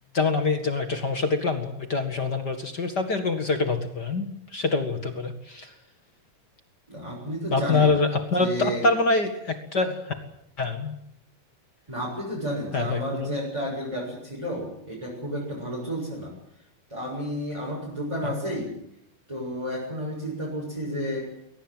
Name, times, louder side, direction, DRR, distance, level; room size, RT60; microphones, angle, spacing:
voice 1, 0.1-5.7 7.5-10.1 10.6-10.9 12.7-13.3, left 3 dB, 40° left, 7 dB, 1.6 m, -25 dB
voice 2, 6.9-7.9 8.4-8.9 11.9-16.3 16.9-18.7 19.3-21.3, equal, 5° right, -3 dB, 6.8 m, -31 dB
21.5 x 19.0 x 9.1 m, 0.74 s
omnidirectional pair, 4.6 m